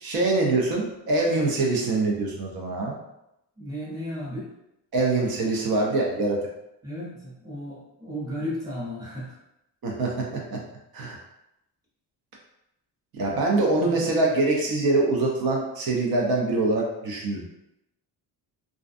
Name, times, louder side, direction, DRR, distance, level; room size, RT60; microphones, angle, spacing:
voice 1, 0.0-3.0 4.9-6.4 9.8-10.6 10.9-11.2 13.2-17.4, right 2 dB, 60° right, -1 dB, 0.7 m, -24 dB
voice 2, 3.6-4.5 6.8-9.4 13.7-14.1, equal, 10° right, -8 dB, 0.8 m, -34 dB
2.5 x 2.2 x 2.5 m, 0.85 s
cardioid pair, 155°, 41 cm